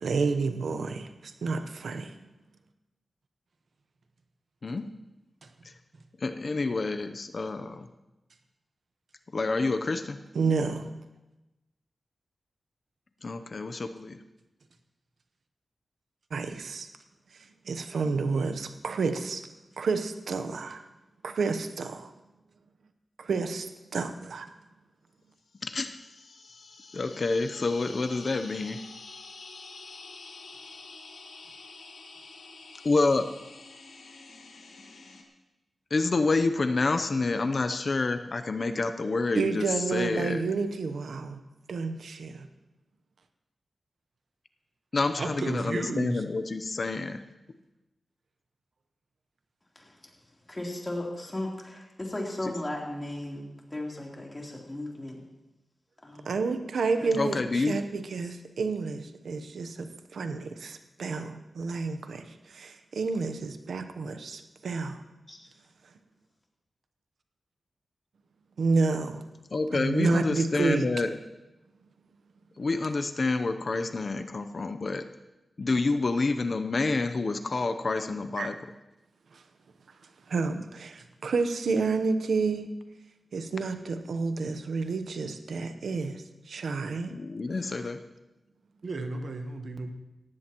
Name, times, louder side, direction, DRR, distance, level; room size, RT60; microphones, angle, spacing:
voice 1, 0.0-2.1 10.3-10.9 16.3-16.9 17.7-19.5 19.8-20.8 21.2-22.1 23.2-24.5 39.3-41.4 41.7-42.5 56.3-65.0 68.6-69.2 69.7-70.9 78.4-78.5 79.3-79.4 80.3-82.7 83.3-87.2, right 4 dB, 85° right, 9 dB, 0.9 m, -30 dB
voice 2, 4.6-4.9 5.6-5.7 6.2-7.9 9.3-10.2 13.2-14.2 25.6-26.0 26.9-28.8 32.8-33.3 35.9-40.4 44.9-47.2 52.4-52.5 57.2-57.8 69.5-71.1 72.6-75.1 75.6-78.6 87.0-88.0, left 3 dB, 50° left, 9 dB, 0.7 m, -28 dB
sound 1, 25.5-35.2, left 3 dB, 90° left, 1.8 m, -48 dB
voice 3, 45.2-46.2 81.0-81.1 88.8-89.9, right 2 dB, 65° right, 6 dB, 1.2 m, -33 dB
voice 4, 49.8-50.1 50.5-55.2 56.0-56.3 57.0-57.8 58.2-58.3 65.3-65.5, left 1 dB, 20° left, -2 dB, 3.4 m, -37 dB
18.0 x 15.5 x 3.0 m, 1.0 s
wide cardioid pair, 90°, 0 cm